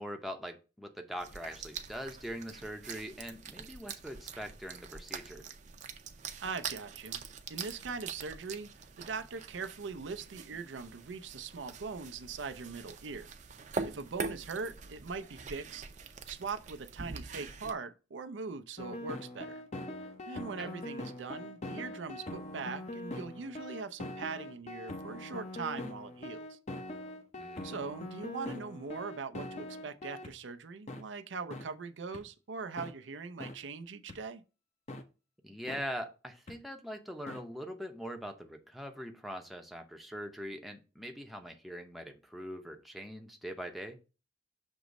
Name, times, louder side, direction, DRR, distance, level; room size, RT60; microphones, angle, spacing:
voice 1, 0.0-5.5 20.6-20.7 27.4-27.8 35.4-44.0, equal, ahead, 0.7 m, -42 dB
sound 1, 1.2-17.7, right 5 dB, 40° right, 0.6 m, -44 dB
voice 2, 6.4-8.7 9.0-13.3 13.8-15.8 16.3-19.6 20.3-26.6 27.6-34.4, right 4 dB, 90° right, 0.6 m, -41 dB
sound 2, 18.8-30.3 30.9-31.0 31.5-31.6 32.1-32.2 32.8-32.9 33.4-33.5 34.1-34.2 34.9-35.0 35.7-35.8 36.5-36.6 37.3-37.4, left 1 dB, 35° left, 0.7 m, -42 dB
6.2 x 3.0 x 5.1 m
head